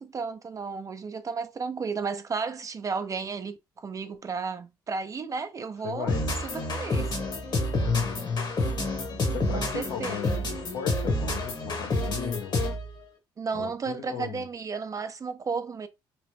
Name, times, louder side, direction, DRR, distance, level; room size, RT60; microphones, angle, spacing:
voice 1, 0.0-6.1 6.4-7.1 9.5-10.4 13.4-15.9, right 5 dB, 35° right, 0.4 m, -33 dB
voice 2, 5.8-6.2 7.8-8.3 9.1-12.8 13.5-14.4, left 8 dB, 85° left, 0.8 m, -37 dB
sound 1, 6.1-12.9, left 2 dB, 50° left, 1.1 m, -28 dB
2.9 x 2.0 x 3.1 m
supercardioid pair, 65°, 10 cm